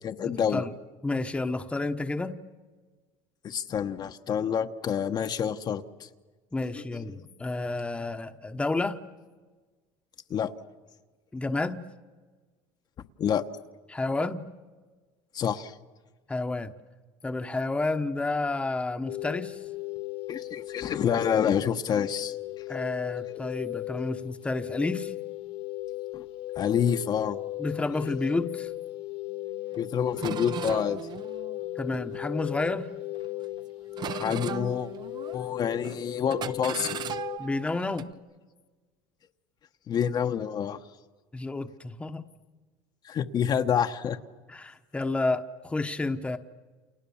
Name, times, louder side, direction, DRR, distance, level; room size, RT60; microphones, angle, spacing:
voice 1, 0.0-0.6 3.4-6.1 6.6-7.0 10.3-10.5 13.2-13.4 15.3-15.8 20.3-22.4 23.3-23.4 26.1-26.2 26.6-27.4 29.8-31.0 34.1-34.9 35.3-37.0 39.9-40.8 43.0-44.2, left 8 dB, 35° left, 6 dB, 1.1 m, -28 dB
voice 2, 1.0-2.4 6.5-9.0 11.3-11.8 13.9-14.4 16.3-16.7 17.2-19.6 22.7-25.1 27.6-28.7 31.8-32.9 37.4-38.1 41.3-42.2 44.5-46.4, left 2 dB, 10° left, 7 dB, 1.1 m, -30 dB
sound 1, 19.1-37.4, left 17 dB, 55° left, 1.6 m, -37 dB
sound 2, 29.7-29.8 30.2-32.7 33.1-33.6 34.0-35.6 35.8-36.0 36.3-38.1, right 9 dB, 40° right, 0.8 m, -38 dB
29.5 x 28.0 x 7.2 m, 1.4 s
cardioid pair, 130°, 12 cm